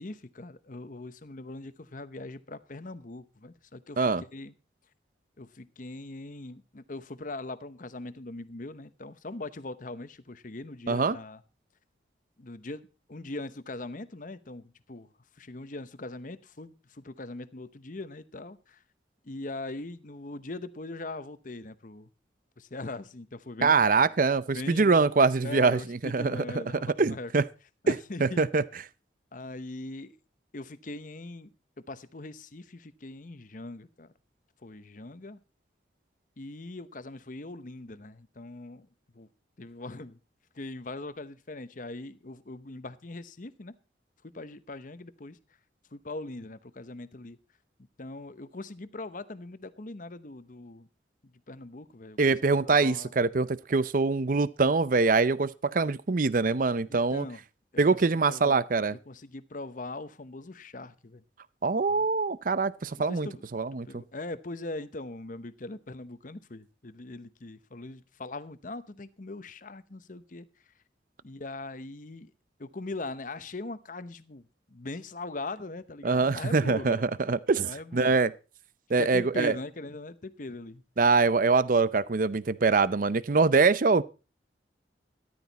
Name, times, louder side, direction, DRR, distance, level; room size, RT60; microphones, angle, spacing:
voice 1, 0.0-4.0 4.3-4.5 5.4-11.4 12.4-15.1 15.4-18.8 19.2-22.1 22.6-23.8 24.5-25.0 25.4-27.3 27.8-28.5 29.3-30.2 30.5-31.5 31.9-34.1 34.6-35.4 36.4-38.9 39.1-39.3 39.6-40.2 40.5-43.7 44.2-45.4 45.9-47.4 48.0-50.9 51.5-52.2 52.7-53.1 56.9-57.4 57.7-57.8 58.3-58.6 58.9-61.2 61.9-62.1 63.1-63.5 63.9-70.5 71.2-72.3 72.6-74.4 74.7-77.0 77.6-78.2 79.0-80.8, left 2 dB, 45° left, 0.9 m, -41 dB
voice 2, 23.6-26.6 27.0-27.4 27.9-28.0 28.2-28.6 52.2-57.3 57.8-58.9 61.6-64.0 76.0-78.3 78.9-79.5 81.0-84.0, right 4 dB, 50° right, 0.6 m, -24 dB
13.5 x 12.0 x 4.1 m
head